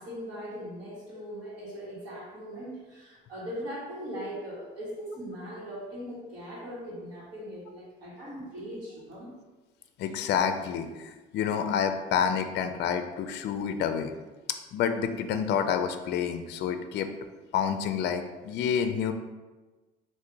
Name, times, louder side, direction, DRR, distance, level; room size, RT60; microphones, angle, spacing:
voice 1, 0.0-9.4, equal, 50° right, -10 dB, 1.5 m, -40 dB
voice 2, 10.0-14.1 14.7-17.1 17.5-19.1, left 7 dB, 55° left, 8 dB, 0.4 m, -28 dB
3.6 x 2.5 x 4.6 m, 1.2 s
cardioid pair, 115°, 20 cm